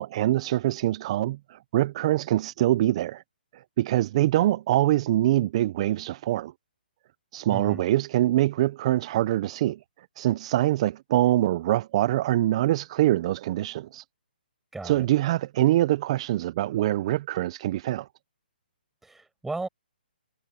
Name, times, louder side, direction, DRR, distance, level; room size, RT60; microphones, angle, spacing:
voice 1, 0.0-3.2 3.5-6.5 7.3-9.8 10.2-14.0 14.8-18.1, right 14 dB, 35° right, 0.6 m, -24 dB
voice 2, 7.5-7.8 14.7-15.1 19.0-19.7, right 3 dB, 5° right, 5.9 m, -35 dB
hypercardioid pair, 155°, 5 cm